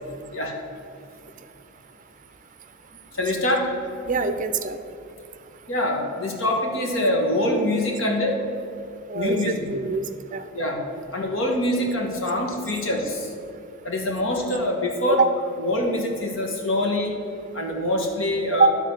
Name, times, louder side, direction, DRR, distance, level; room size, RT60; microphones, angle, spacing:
voice 1, 3.2-3.7 5.7-8.4 9.1-9.7 10.5-10.8 11.1-13.3 13.8-15.2 15.6-17.2 17.5-18.7, left 1 dB, 70° left, 1 dB, 1.5 m, -24 dB
voice 2, 4.0-4.8 9.1-10.0 10.3-10.4 15.1-15.2 18.5-18.7, right 4 dB, 40° right, 9 dB, 0.5 m, -23 dB
11.5 x 4.0 x 6.1 m, 2.7 s
head